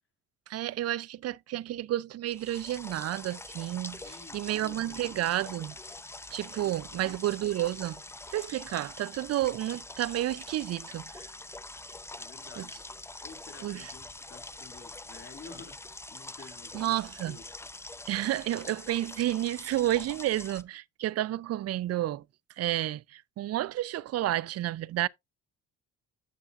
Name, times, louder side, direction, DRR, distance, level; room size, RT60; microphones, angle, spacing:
voice 1, 0.5-5.7 6.3-8.0 8.3-11.3 12.6-12.7 13.6-13.9 16.7-17.4 18.1-22.2 22.6-25.1, right 14 dB, 55° right, 0.4 m, -31 dB
sound 1, 2.3-20.6, left 2 dB, 10° left, 0.6 m, -45 dB
voice 2, 4.0-5.4 6.6-7.3 12.2-12.7 13.2-17.7, left 5 dB, 45° left, 2.5 m, -51 dB
sound 2, 4.8-9.2, left 5 dB, 60° left, 5.1 m, -66 dB
10.0 x 6.8 x 2.4 m
cardioid pair, 90°, 30 cm